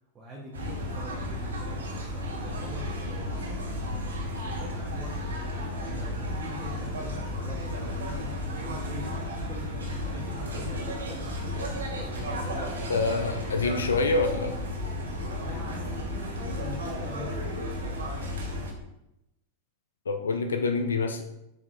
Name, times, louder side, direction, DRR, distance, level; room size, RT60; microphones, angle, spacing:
voice 1, 0.1-5.2 5.9-11.2 11.9-13.4 15.4-17.6, right 1 dB, 20° right, -4 dB, 0.9 m, -44 dB
sound 1, 0.5-18.7, left 1 dB, 70° right, 0.9 m, -33 dB
voice 2, 12.9-14.6 20.1-21.2, left 3 dB, 70° left, 6 dB, 0.3 m, -26 dB
7.1 x 2.8 x 2.5 m, 0.89 s
figure-of-eight pair, 90°, 0 cm